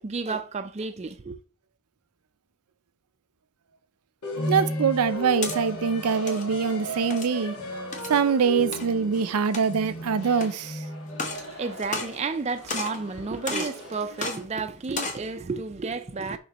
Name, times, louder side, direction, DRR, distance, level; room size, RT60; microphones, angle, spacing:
voice 1, 0.0-1.4 11.3-16.4, right 4 dB, 30° right, 0.4 m, -32 dB
sound 1, 4.2-14.4, equal, 85° left, 1.6 m, -35 dB
voice 2, 4.5-7.5 8.1-10.8, right 6 dB, 85° right, 0.5 m, -24 dB
sound 2, 5.1-5.6 6.1-6.4 7.1-7.4 7.9-8.2 8.7-8.9 9.4-9.9 10.4-10.5 11.1-11.5 11.8-12.4 12.7-13.0 13.5-13.8 14.2-14.4 14.8-15.2, left 3 dB, 35° left, 1.0 m, -32 dB
6.4 x 5.2 x 2.9 m
head